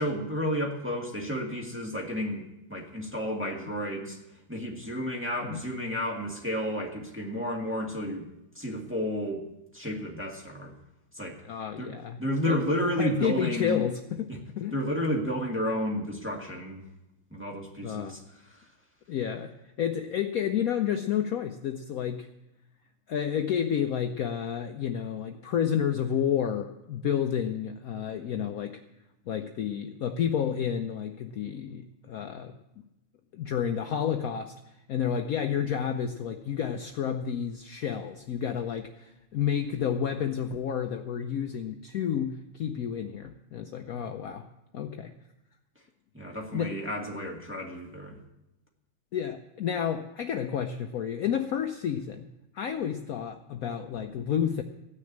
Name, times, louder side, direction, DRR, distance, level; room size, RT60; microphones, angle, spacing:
voice 1, 0.0-4.2 4.5-8.2 8.6-9.5 9.7-10.7 11.1-11.4 11.8-13.9 14.3-14.4 14.7-16.8 17.3-18.6 46.1-48.2, equal, 5° right, -2 dB, 1.8 m, -31 dB
voice 2, 11.4-12.6 13.0-14.3 14.6-14.8 17.8-18.2 19.1-22.3 23.1-28.8 29.3-32.5 33.3-34.5 34.9-44.5 44.7-45.1 46.5-46.7 49.1-52.3 52.5-54.6, left 8 dB, 70° left, 6 dB, 0.8 m, -30 dB
15.5 x 6.6 x 8.8 m, 0.91 s
omnidirectional pair, 2.3 m